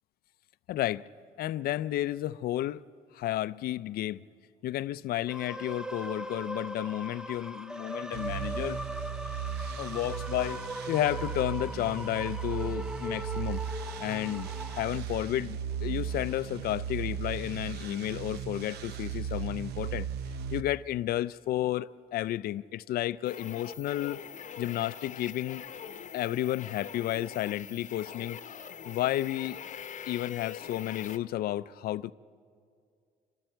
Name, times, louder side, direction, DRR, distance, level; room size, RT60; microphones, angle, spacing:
voice 1, 0.7-1.1 1.4-2.8 3.1-4.2 4.6-8.8 9.8-13.6 14.0-20.1 20.5-24.2 24.6-25.6 26.1-28.4 28.8-29.6 30.1-32.1, left 14 dB, 65° left, 0.5 m, -32 dB
sound 1, 5.3-14.9, equal, 5° right, 0.6 m, -39 dB
sound 2, 8.1-20.6, right 8 dB, 75° right, 1.0 m, -36 dB
sound 3, 23.2-31.2, left 7 dB, 45° left, 0.9 m, -43 dB
27.5 x 26.5 x 4.6 m
cardioid pair, 110°, 17 cm